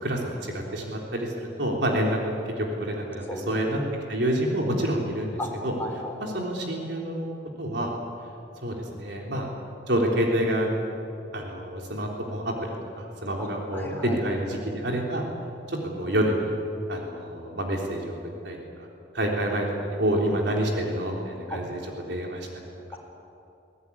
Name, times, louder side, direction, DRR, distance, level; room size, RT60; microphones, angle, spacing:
voice 1, 0.0-3.8 4.1-5.7 6.2-7.9 8.6-9.5 9.9-10.7 11.3-12.7 12.9-15.2 15.7-16.5 16.9-18.1 18.4-18.9 19.1-21.8 22.1-22.5 22.9-23.0, right 1 dB, 70° right, 0 dB, 3.6 m, -28 dB
voice 2, 5.8-6.2 13.4-13.5 13.7-14.2 21.5-21.6 22.9-23.0, left 1 dB, 10° left, -1 dB, 4.0 m, -34 dB
22.0 x 18.0 x 9.8 m, 2.7 s
head